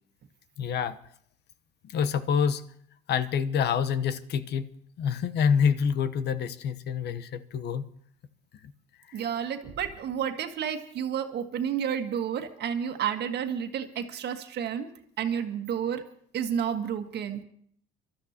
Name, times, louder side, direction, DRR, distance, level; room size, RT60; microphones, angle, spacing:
voice 1, 0.6-1.0 1.8-2.6 3.1-7.9 9.1-9.3, left 7 dB, 60° left, 11 dB, 1.0 m, -27 dB
voice 2, 9.1-14.9 15.2-16.0 16.3-17.4, right 8 dB, 60° right, 7 dB, 1.6 m, -31 dB
25.5 x 13.0 x 2.9 m, 0.62 s
supercardioid pair, 75°, 20 cm